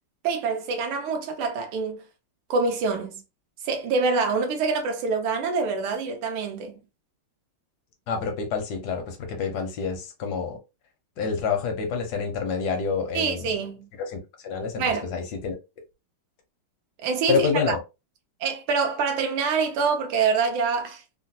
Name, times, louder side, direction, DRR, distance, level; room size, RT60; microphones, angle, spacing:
voice 1, 0.2-2.0 2.5-3.2 3.6-6.8 13.1-13.9 14.8-15.1 17.0-17.8 18.4-21.0, right 4 dB, 90° right, 1.6 m, -25 dB
voice 2, 8.1-10.6 11.2-13.5 14.0-14.2 14.4-15.6 17.3-17.8, left 5 dB, 70° left, 0.9 m, -27 dB
3.8 x 2.0 x 2.7 m
omnidirectional pair, 2.3 m